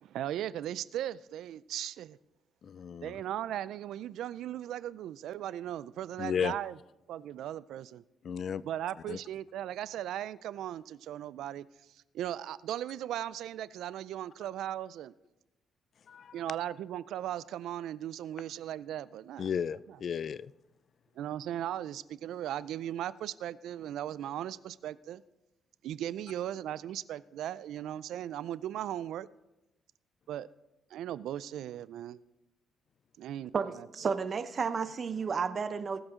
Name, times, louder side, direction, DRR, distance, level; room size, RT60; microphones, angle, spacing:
voice 1, 0.0-2.2 3.0-6.8 7.1-8.0 8.6-11.6 11.9-15.1 16.3-19.5 21.2-25.2 25.8-29.3 30.3-30.5 30.9-32.2 33.2-33.5, right 11 dB, 80° right, 0.3 m, -37 dB
voice 2, 2.6-3.1 6.2-6.5 8.2-8.6 9.1-9.2 16.1-16.3 19.4-20.5, left 7 dB, 55° left, 0.3 m, -34 dB
voice 3, 33.5-36.0, right 5 dB, 45° right, 0.8 m, -32 dB
19.0 x 7.9 x 3.7 m
cardioid pair, 90°, 0 cm